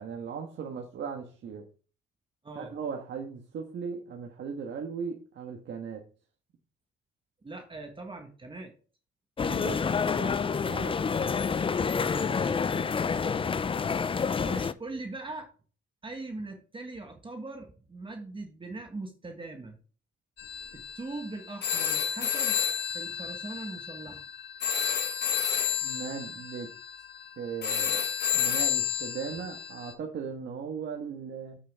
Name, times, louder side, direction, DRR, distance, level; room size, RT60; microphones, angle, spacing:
voice 1, 0.0-1.6 2.5-6.0 9.4-9.8 10.2-11.0 25.8-26.7 27.4-28.1 28.3-31.6, right 6 dB, 65° right, 2 dB, 1.5 m, -38 dB
voice 2, 2.4-2.7 7.4-8.7 12.0-12.7 14.4-15.5 16.0-19.8 20.7-22.6 22.9-24.3, right 2 dB, 25° right, 4 dB, 1.6 m, -41 dB
sound 1, 9.4-14.7, left 5 dB, 25° left, 0.5 m, -28 dB
sound 2, 20.4-29.9, left 8 dB, 55° left, 1.6 m, -31 dB
7.7 x 6.4 x 3.6 m, 0.38 s
cardioid pair, 90°, 20 cm